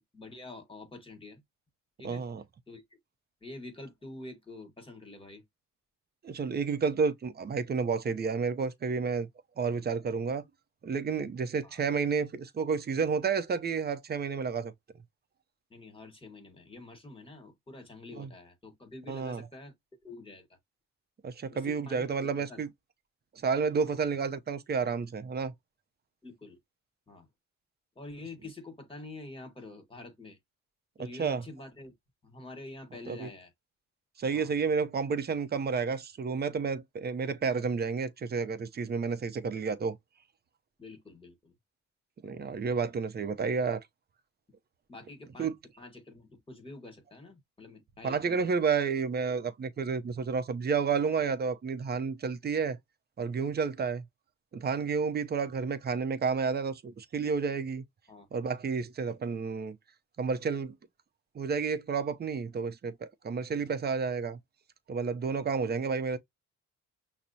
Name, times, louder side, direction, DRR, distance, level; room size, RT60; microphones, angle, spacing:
voice 1, 0.0-1.4 2.0-2.2 2.7-2.8 3.4-5.4 11.6-11.8 15.7-19.7 20.0-20.5 21.5-22.6 23.8-24.0 26.2-26.6 27.1-27.3 27.9-30.4 31.0-31.9 32.2-33.5 34.3-34.5 40.8-41.5 44.9-45.5 45.8-48.5 57.2-57.3 58.1-58.3, left 2 dB, 20° left, 1.4 m, -47 dB
voice 2, 2.0-2.4 6.2-9.3 9.6-10.4 10.8-14.7 18.2-18.3 19.1-19.4 21.2-22.7 23.4-25.5 31.2-31.4 33.1-33.3 34.2-40.0 42.2-43.8 45.4-45.5 48.0-52.8 53.2-54.0 54.5-57.8 58.3-59.8 60.2-60.7 61.3-64.4 64.9-66.2, right 5 dB, 35° right, 0.6 m, -30 dB
5.8 x 2.0 x 2.7 m
cardioid pair, 90°, 30 cm